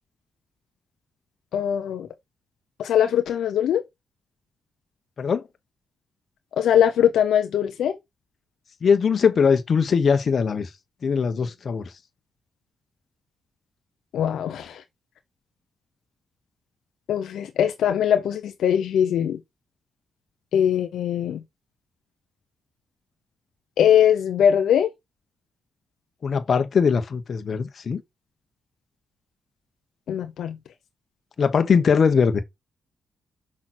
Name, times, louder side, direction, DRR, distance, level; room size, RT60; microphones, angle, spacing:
voice 1, 1.5-2.1 2.8-3.8 6.6-7.9 14.1-14.8 17.1-19.4 20.5-21.4 23.8-24.9 30.1-30.6, left 9 dB, 85° left, 0.8 m, -21 dB
voice 2, 8.8-10.7 11.0-11.9 26.2-28.0 31.4-32.4, left 6 dB, 50° left, 1.3 m, -21 dB
6.0 x 5.9 x 4.4 m
cardioid pair, 95°, 0 cm